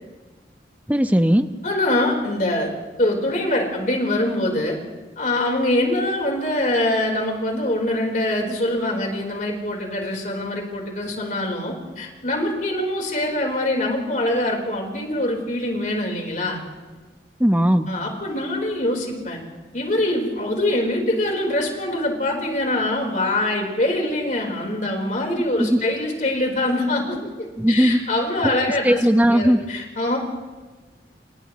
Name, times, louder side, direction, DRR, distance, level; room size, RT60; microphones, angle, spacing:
voice 1, 0.9-1.5 17.4-17.9 25.6-25.8 27.6-28.0 28.8-29.6, equal, 10° right, 8 dB, 0.9 m, -17 dB
voice 2, 1.6-2.7 3.0-4.8 5.2-16.6 17.9-19.4 19.7-29.0 29.3-30.2, left 1 dB, 45° left, 1 dB, 4.5 m, -24 dB
29.5 x 29.5 x 3.2 m, 1.3 s
head